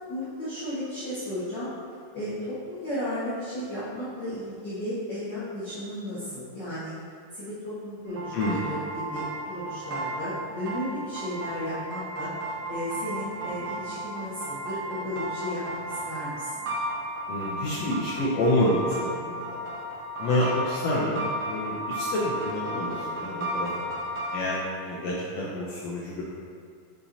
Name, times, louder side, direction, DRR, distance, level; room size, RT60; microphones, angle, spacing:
voice 1, 0.1-1.7 2.1-6.9 7.3-12.3 12.7-16.5 18.9-19.4 23.3-23.7, left 1 dB, 40° left, -12 dB, 1.7 m, -34 dB
sound 1, 8.1-24.5, right 1 dB, 55° right, 1.6 m, -34 dB
voice 2, 17.3-19.6 20.2-23.7 24.3-26.2, left 1 dB, 75° left, -5 dB, 1.6 m, -28 dB
7.1 x 7.0 x 2.7 m, 2.3 s
omnidirectional pair, 3.8 m